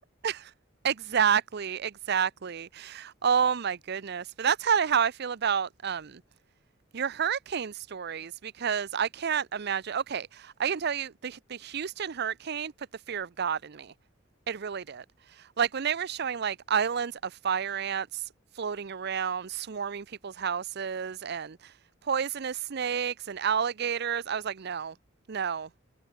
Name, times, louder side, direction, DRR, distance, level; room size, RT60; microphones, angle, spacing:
voice 1, 0.8-6.2 6.9-13.9 14.5-21.7 22.1-24.9 25.3-25.7, right 7 dB, 55° right, 0.6 m, -30 dB
head